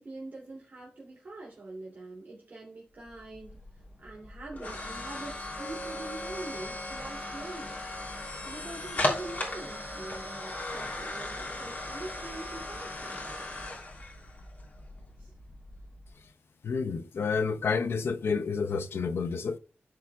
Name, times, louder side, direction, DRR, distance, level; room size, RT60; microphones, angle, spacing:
voice 1, 0.0-13.2 15.2-15.3, right 2 dB, 45° right, 2.9 m, -44 dB
sound 1, 3.1-16.1, left 1 dB, 45° left, 2.9 m, -37 dB
voice 2, 16.6-19.6, left 5 dB, 75° left, 0.6 m, -29 dB
14.0 x 4.8 x 2.3 m
wide cardioid pair, 95°, 4 cm